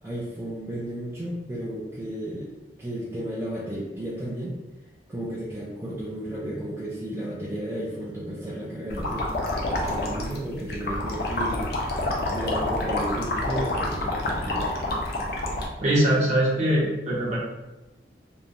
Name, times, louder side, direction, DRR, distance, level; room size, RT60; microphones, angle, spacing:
voice 1, 0.0-2.5 2.8-4.6 5.1-9.3 9.7-11.6 12.3-14.7, right 1 dB, 15° right, -7 dB, 0.3 m, -33 dB
sound 1, 8.9-15.7, left 1 dB, 60° left, 0.5 m, -28 dB
voice 2, 15.8-17.4, right 1 dB, 40° right, -6 dB, 0.8 m, -22 dB
2.9 x 2.1 x 2.5 m, 1.1 s
head